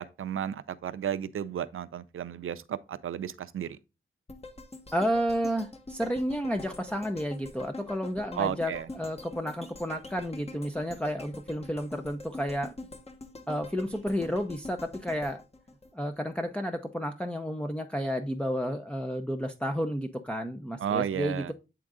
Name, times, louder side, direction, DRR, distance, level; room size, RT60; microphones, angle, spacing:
voice 1, 0.0-3.8 8.3-8.9 20.8-21.5, right 9 dB, 90° right, 0.5 m, -33 dB
sound 1, 4.3-16.5 16.9-17.0, left 2 dB, 30° left, 1.2 m, -45 dB
voice 2, 4.9-12.7 13.5-15.4 15.9-21.5, equal, 5° left, 0.6 m, -31 dB
8.6 x 3.8 x 3.6 m
wide cardioid pair, 80°, 21 cm